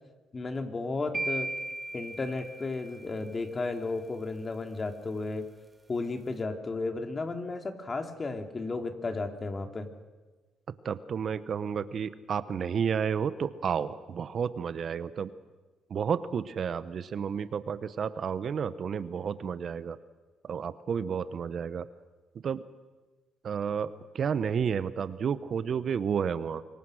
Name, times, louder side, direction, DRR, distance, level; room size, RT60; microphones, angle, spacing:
voice 1, 0.3-1.5 1.9-5.4 5.9-9.9, left 3 dB, 30° left, 5 dB, 2.8 m, -33 dB
sound 1, 1.1-3.3, right 2 dB, 20° right, 1.2 m, -36 dB
voice 2, 10.8-15.3 15.9-20.0 20.4-21.9 22.4-22.6 23.4-26.6, right 7 dB, 50° right, 14 dB, 0.9 m, -31 dB
26.0 x 22.5 x 6.4 m, 1.2 s
cardioid pair, 85°, 0 cm